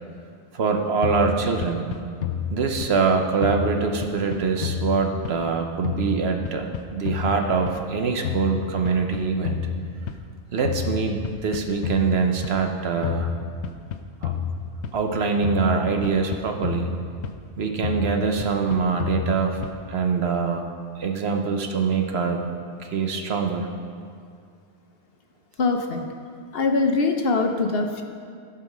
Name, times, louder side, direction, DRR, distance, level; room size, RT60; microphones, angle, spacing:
voice 1, 0.5-1.9 2.5-9.6 10.5-13.3 14.2-14.3 14.9-16.9 17.6-19.6 19.9-20.6 21.0-22.5 22.8-23.7, right 5 dB, 70° right, 4 dB, 1.1 m, -24 dB
sound 1, 1.0-3.1 3.4-5.6 5.8-8.0 8.2-10.3 10.6-12.6 13.0-15.1 15.4-17.5 17.8-20.0, left 7 dB, 90° left, 0.9 m, -30 dB
voice 2, 25.6-26.1 26.5-28.0, left 3 dB, 60° left, 4 dB, 1.0 m, -22 dB
14.0 x 4.8 x 6.1 m, 2.2 s
omnidirectional pair, 1.1 m